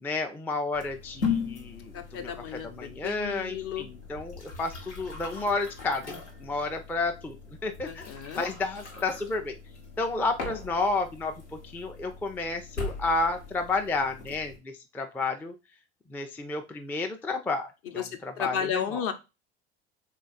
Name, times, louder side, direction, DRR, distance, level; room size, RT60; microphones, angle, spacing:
voice 1, 0.0-7.4 7.6-9.6 10.0-15.6 16.1-19.0, left 3 dB, 5° left, 5 dB, 0.3 m, -31 dB
sound 1, 0.7-14.6, left 5 dB, 85° left, 0.9 m, -39 dB
voice 2, 1.9-3.9 7.8-8.4 17.9-19.1, left 8 dB, 45° left, 7 dB, 0.7 m, -33 dB
3.5 x 2.3 x 3.8 m, 0.27 s
figure-of-eight pair, 65°, 33 cm